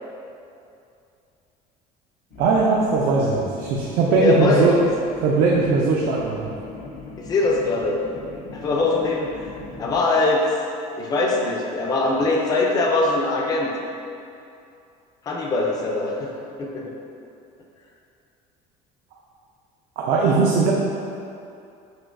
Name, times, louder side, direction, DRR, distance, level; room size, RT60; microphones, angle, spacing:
sound 1, 2.3-10.0, left 3 dB, 70° left, 0.6 m, -39 dB
voice 1, 2.4-4.7 5.2-6.5 20.0-20.7, right 4 dB, 65° right, -3 dB, 0.4 m, -19 dB
voice 2, 4.2-4.9 7.2-8.0 8.5-9.3 9.8-10.4 11.0-13.7 15.3-16.3 16.6-16.9, left 3 dB, 25° left, -1 dB, 0.4 m, -22 dB
6.0 x 2.6 x 2.5 m, 2.6 s
cardioid pair, 175°, 16 cm